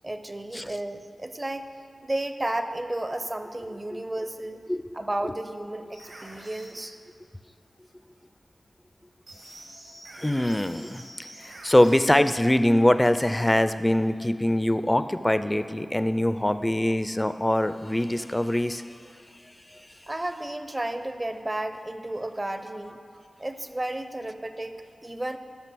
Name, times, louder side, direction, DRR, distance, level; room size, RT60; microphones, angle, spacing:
voice 1, 0.0-1.7 2.0-4.6 4.9-7.0 20.1-23.0 23.4-25.4, right 1 dB, 30° right, 9 dB, 0.7 m, -33 dB
sound 1, 5.9-6.7 9.3-12.2, right 1 dB, 70° right, 2.3 m, -45 dB
voice 2, 10.2-19.0 19.7-19.9, left 1 dB, 15° left, 12 dB, 0.5 m, -23 dB
12.5 x 5.5 x 6.2 m, 2.3 s
cardioid pair, 45°, 0 cm